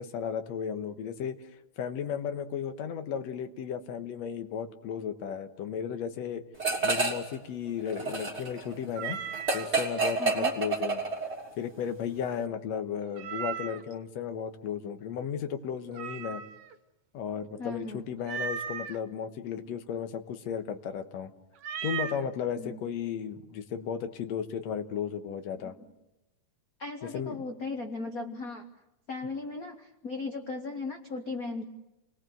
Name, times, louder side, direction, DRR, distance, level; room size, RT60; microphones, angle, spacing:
voice 1, 0.0-1.4 1.8-6.4 6.8-9.2 9.5-11.0 11.6-16.4 17.1-21.3 21.8-25.7 27.1-27.4, left 8 dB, 65° left, 8 dB, 2.4 m, -34 dB
sound 1, 6.6-7.3 7.6-11.5, right 4 dB, 20° right, 3.5 m, -29 dB
Meow, 8.9-9.7 13.1-13.9 15.9-16.7 18.2-19.0 21.6-22.2, right 8 dB, 75° right, 2.6 m, -36 dB
voice 2, 10.2-10.6 17.6-18.0 22.6-22.8 25.6-25.9 26.8-28.6 29.1-31.6, left 3 dB, 45° left, 4 dB, 1.2 m, -37 dB
29.0 x 20.0 x 7.8 m, 0.97 s
omnidirectional pair, 3.4 m